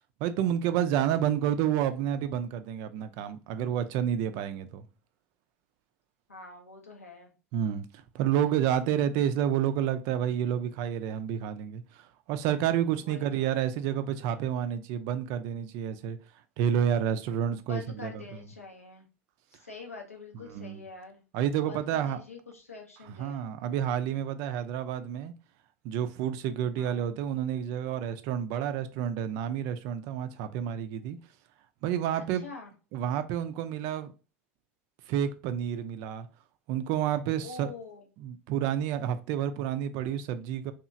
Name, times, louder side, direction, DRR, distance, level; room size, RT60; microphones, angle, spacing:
voice 1, 0.2-4.8 7.5-7.9 8.1-16.2 16.6-18.2 20.5-20.8 21.3-22.2 23.2-25.3 25.8-31.2 31.8-32.4 32.9-34.1 35.1-36.3 36.7-37.7 38.2-40.7, right 9 dB, 50° right, 0.3 m, -29 dB
voice 2, 6.3-7.3 13.0-13.5 17.7-19.1 19.5-21.2 21.6-23.5 23.8-24.1 26.8-27.1 32.2-32.7 37.4-38.0, left 4 dB, 85° left, 0.6 m, -45 dB
2.9 x 2.3 x 2.5 m
figure-of-eight pair, 70°, 7 cm